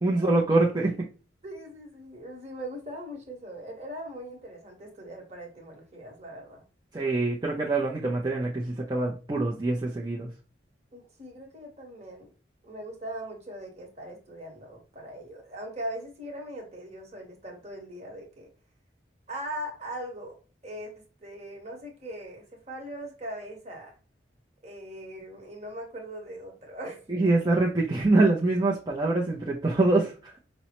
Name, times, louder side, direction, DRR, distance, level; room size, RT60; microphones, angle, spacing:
voice 1, 0.0-0.9 6.9-10.3 27.1-30.4, right 2 dB, 20° right, -3 dB, 0.5 m, -24 dB
voice 2, 1.4-6.6 10.9-12.3 12.6-18.5 19.3-20.3 20.6-20.9 21.2-23.9 24.6-27.1, right 1 dB, 35° right, 1 dB, 1.1 m, -40 dB
5.2 x 2.0 x 2.9 m, 0.35 s
head